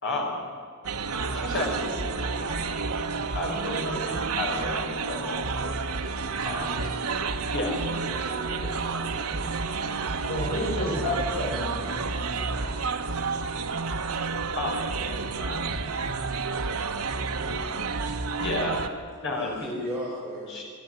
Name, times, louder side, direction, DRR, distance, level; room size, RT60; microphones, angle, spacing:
voice 1, 0.0-0.4 1.3-2.6 3.3-5.7 6.0-6.8 7.5-7.8 8.2-9.2 14.5-15.7 18.4-18.8 19.2-19.7 20.5-20.6, left 2 dB, 55° left, 0 dB, 5.4 m, -33 dB
sound 1, 0.8-18.9, right 4 dB, 80° right, 1.2 m, -30 dB
voice 2, 3.1-3.5 10.2-11.9, left 1 dB, 85° left, -7 dB, 7.4 m, -30 dB
voice 3, 17.2-18.0 19.3-20.5, equal, 10° right, -9 dB, 5.2 m, -36 dB
24.5 x 12.0 x 9.8 m, 2.2 s
head